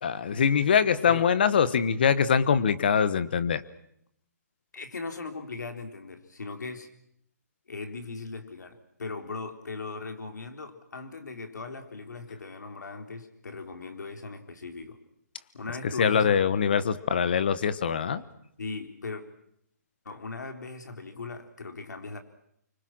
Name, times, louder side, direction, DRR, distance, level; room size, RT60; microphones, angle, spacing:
voice 1, 0.0-3.6 15.8-18.2, left 7 dB, 35° left, 15 dB, 1.1 m, -23 dB
voice 2, 4.7-6.9 7.7-15.0 15.5-16.8 18.6-19.2 20.0-22.2, left 4 dB, 85° left, 6 dB, 4.1 m, -39 dB
27.5 x 25.0 x 6.3 m, 0.73 s
hypercardioid pair, 180°, 9 cm